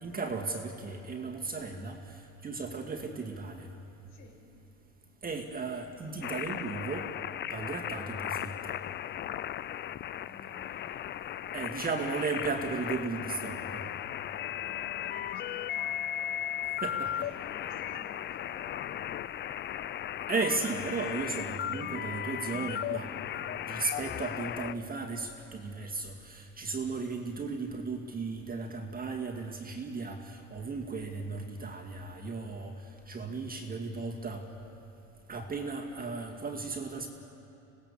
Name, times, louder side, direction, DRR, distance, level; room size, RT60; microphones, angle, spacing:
voice 1, 0.0-3.7 5.2-7.1 7.5-8.8 11.5-13.8 16.8-17.1 20.3-23.1 23.5-32.8 33.1-34.4 35.3-37.1, right 4 dB, 20° right, 2 dB, 2.2 m, -35 dB
voice 2, 4.1-4.4 10.1-11.2 14.6-16.6 17.0-19.0 33.2-33.8, left 4 dB, 50° left, 2 dB, 6.0 m, -53 dB
sound 1, 6.2-24.7, left 11 dB, 30° left, 0.5 m, -36 dB
26.0 x 18.5 x 7.0 m, 2.8 s
hypercardioid pair, 95°, 40 cm